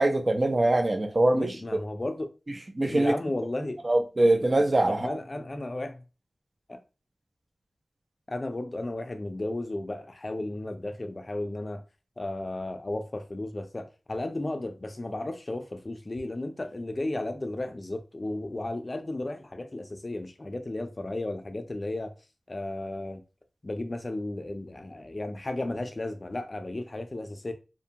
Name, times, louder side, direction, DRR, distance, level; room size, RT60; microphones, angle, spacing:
voice 1, 0.0-1.5 2.8-3.1 3.8-5.1, right 2 dB, 40° right, 0.4 m, -23 dB
voice 2, 1.3-2.3 2.8-3.8 4.9-6.0 6.7-6.8 8.3-11.8 12.2-22.1 22.5-23.2 23.6-27.5, left 2 dB, 35° left, 0.4 m, -34 dB
2.6 x 2.2 x 2.7 m
wide cardioid pair, 95°, 0 cm